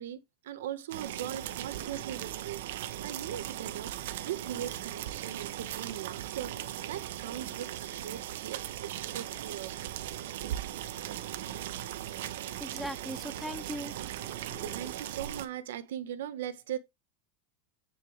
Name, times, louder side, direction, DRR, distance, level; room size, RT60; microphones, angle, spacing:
voice 1, 0.0-2.6 3.0-3.9 4.2-9.8 14.3-16.8, right 10 dB, 90° right, 1.5 m, -40 dB
sound 1, 0.9-15.5, right 12 dB, 75° right, 1.2 m, -38 dB
voice 2, 12.6-13.9 14.2-14.9, equal, ahead, 0.5 m, -40 dB
10.0 x 5.4 x 3.6 m
supercardioid pair, 170°, 0 cm